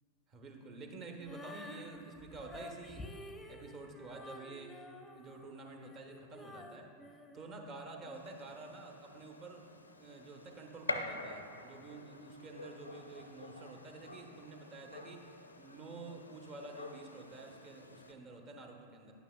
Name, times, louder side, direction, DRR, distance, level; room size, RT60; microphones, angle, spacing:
voice 1, 0.3-3.1 3.4-4.9 5.1-6.9 7.3-9.7 10.0-15.3 15.6-19.1, right 3 dB, 30° right, 2 dB, 1.0 m, -49 dB
Female singing, 1.2-8.2, left 1 dB, 10° left, 0.6 m, -51 dB
Gunshot gunfire, 8.1-18.1, left 2 dB, 80° left, 0.5 m, -47 dB
10.5 x 9.1 x 2.2 m, 2.4 s
figure-of-eight pair, 90°, 0 cm